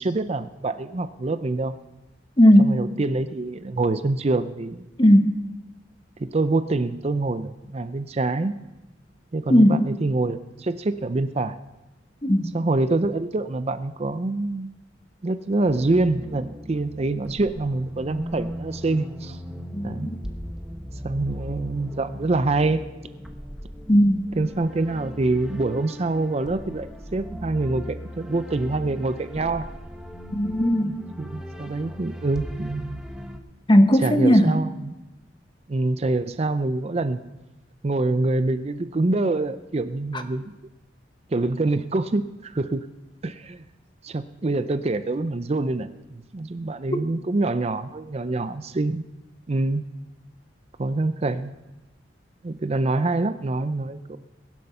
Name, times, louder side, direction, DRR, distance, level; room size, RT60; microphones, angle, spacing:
voice 1, 0.0-1.7 2.6-4.8 6.2-8.5 9.3-11.6 12.5-14.7 15.2-19.4 19.8-20.1 21.0-22.8 24.4-29.7 30.8-33.0 34.0-35.0 35.7-37.2 37.8-40.5 41.3-42.9 43.2-43.7 44.0-45.9 46.3-49.0 49.5-49.9 50.8-51.5 52.4-54.2, right 2 dB, 35° right, 11 dB, 0.5 m, -25 dB
voice 2, 2.4-2.8 5.0-5.4 9.5-9.9 12.2-12.5 19.7-20.2 23.9-24.2 30.3-30.9 33.7-34.6 40.1-40.2, equal, 25° left, 8 dB, 0.9 m, -17 dB
sound 1, 15.7-33.4, equal, 5° right, 0.9 m, -38 dB
22.0 x 7.7 x 5.6 m, 1.0 s
head